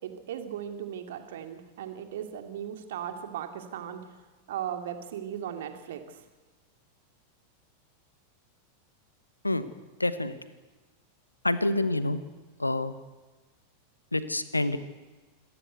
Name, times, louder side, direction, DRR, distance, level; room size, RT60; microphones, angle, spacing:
voice 1, 0.0-6.3, right 9 dB, 55° right, 6 dB, 2.4 m, -37 dB
voice 2, 10.0-10.4 11.4-12.2 12.6-12.9 14.1-14.8, left 2 dB, 85° left, 13 dB, 1.2 m, -27 dB
26.5 x 14.5 x 8.1 m, 1.3 s
figure-of-eight pair, 90°, 0 cm